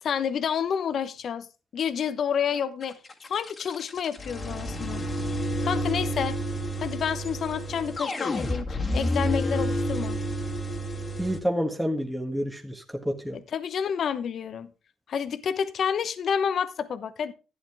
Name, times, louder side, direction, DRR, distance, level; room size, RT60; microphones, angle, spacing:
voice 1, 0.0-1.5 1.7-3.0 3.3-5.0 5.6-6.4 6.8-10.2 13.3-14.7 15.1-17.3, left 7 dB, 60° left, 1.0 m, -29 dB
sound 1, 2.8-11.4, equal, 35° left, 2.0 m, -30 dB
voice 2, 11.2-13.4, equal, ahead, 1.6 m, -29 dB
12.0 x 10.0 x 3.6 m
cardioid pair, 90°, 0 cm